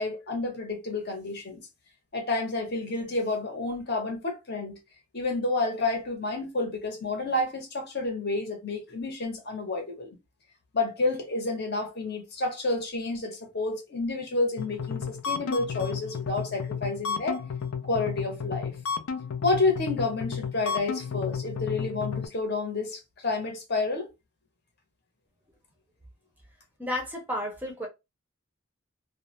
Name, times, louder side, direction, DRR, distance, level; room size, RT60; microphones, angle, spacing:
voice 1, 0.0-1.6 2.1-4.8 5.1-10.2 10.7-17.4 17.8-18.7 19.4-24.1, left 3 dB, 50° left, 0.8 m, -30 dB
sound 1, 14.6-22.3, left 6 dB, 85° left, 0.4 m, -33 dB
voice 2, 26.8-27.9, left 1 dB, 10° right, 0.5 m, -32 dB
2.3 x 2.0 x 2.9 m
head